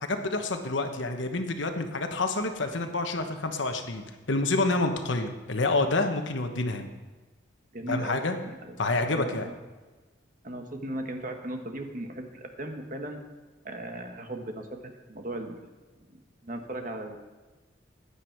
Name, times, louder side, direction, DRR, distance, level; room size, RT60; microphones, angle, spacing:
voice 1, 0.0-6.9 7.9-8.4 8.8-9.5, left 2 dB, 75° left, 6 dB, 1.2 m, -28 dB
voice 2, 7.7-8.8 9.1-9.6 10.4-13.2 13.6-15.6 16.1-17.2, right 1 dB, 45° right, 4 dB, 1.3 m, -37 dB
15.0 x 9.9 x 4.6 m, 1.3 s
head